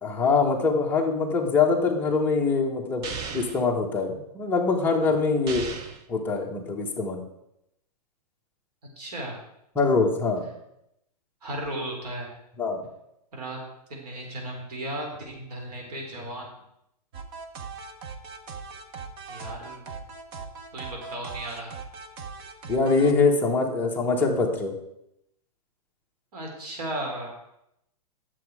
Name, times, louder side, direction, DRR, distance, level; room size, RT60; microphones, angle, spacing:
voice 1, 0.0-3.0 3.3-5.7 6.1-7.2 9.8-10.5 12.6-12.8 22.7-24.7, left 4 dB, 10° left, -1 dB, 1.1 m, -23 dB
sound 1, 3.0-3.6 5.5-6.1, right 5 dB, 20° right, 0.5 m, -35 dB
voice 2, 9.0-9.4 11.4-12.3 13.3-13.6 13.9-16.5 19.3-19.8 20.7-21.7 26.3-27.3, right 1 dB, 70° right, 0 dB, 3.9 m, -35 dB
sound 2, 17.1-23.1, right 5 dB, 35° right, 1.0 m, -39 dB
10.5 x 7.3 x 4.8 m, 0.80 s
hypercardioid pair, 160°, 20 cm